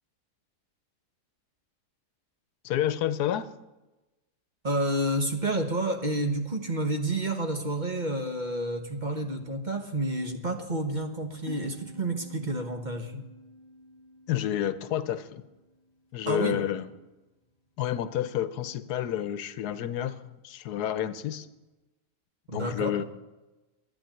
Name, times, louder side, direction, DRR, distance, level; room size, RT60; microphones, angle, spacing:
voice 1, 2.6-3.5 13.1-13.2 14.3-15.4 16.1-16.9 17.8-21.5 22.5-23.0, left 11 dB, 85° left, 14 dB, 1.3 m, -30 dB
voice 2, 4.6-13.1 16.3-16.6 22.5-23.0, right 1 dB, 30° right, 5 dB, 1.2 m, -29 dB
sound 1, 11.5-16.8, left 1 dB, 15° left, 2.0 m, -50 dB
11.5 x 9.9 x 9.1 m, 1.1 s
omnidirectional pair, 1.7 m